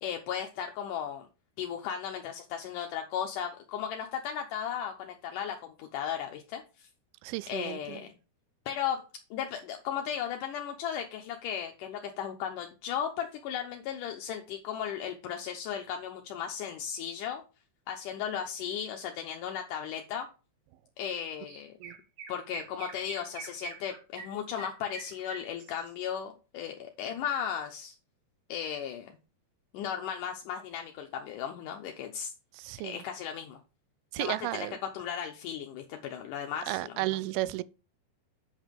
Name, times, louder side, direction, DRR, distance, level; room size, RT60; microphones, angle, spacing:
voice 1, 0.0-1.3 1.6-6.9 7.5-8.1 8.7-9.0 9.3-17.4 17.9-20.3 21.0-21.7 22.3-28.0 28.5-29.1 29.7-32.3 32.8-33.6 34.2-34.7 34.9-37.1, left 8 dB, 75° left, 2.0 m, -36 dB
voice 2, 7.2-8.0 21.8-22.0 32.5-33.0 34.1-34.8 36.7-37.6, right 17 dB, 85° right, 2.4 m, -33 dB
Chirp tweet, 21.1-21.2 21.5-26.0, right 6 dB, 60° right, 1.6 m, -45 dB
8.2 x 5.5 x 5.2 m
omnidirectional pair, 4.5 m